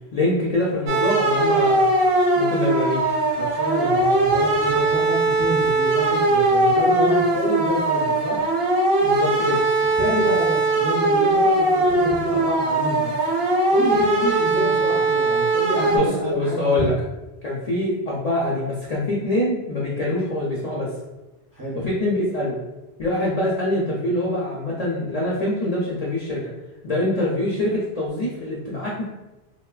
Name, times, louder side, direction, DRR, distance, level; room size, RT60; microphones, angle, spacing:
voice 1, 0.1-1.8 2.4-3.2 9.0-9.6 15.9-16.9 17.4-20.9 21.8-22.6 23.0-26.5 26.8-29.0, left 1 dB, 55° left, -6 dB, 0.4 m, -24 dB
sound 1, 0.9-16.0, right 2 dB, 75° right, 0.8 m, -20 dB
voice 2, 3.4-8.4 10.0-13.1 13.7-16.9 21.5-21.8, equal, 30° right, -6 dB, 0.4 m, -27 dB
3.0 x 2.1 x 2.3 m, 1.0 s
omnidirectional pair, 1.1 m